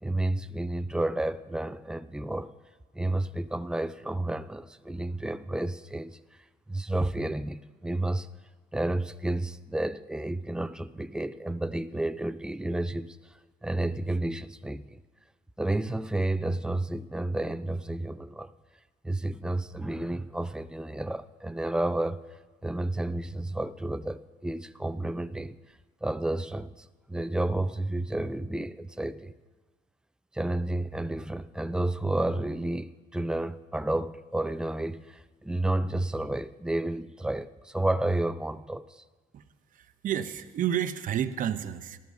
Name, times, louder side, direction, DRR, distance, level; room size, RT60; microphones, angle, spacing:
voice 1, 0.0-2.5 2.9-6.2 6.7-8.3 8.7-13.2 13.6-15.0 15.6-18.5 19.0-22.2 22.6-25.6 26.0-29.3 30.3-39.0, right 1 dB, 5° right, 0.3 m, -31 dB
voice 2, 39.7-42.0, right 10 dB, 55° right, 0.7 m, -30 dB
19.0 x 13.5 x 2.7 m
cardioid pair, 110°, 17 cm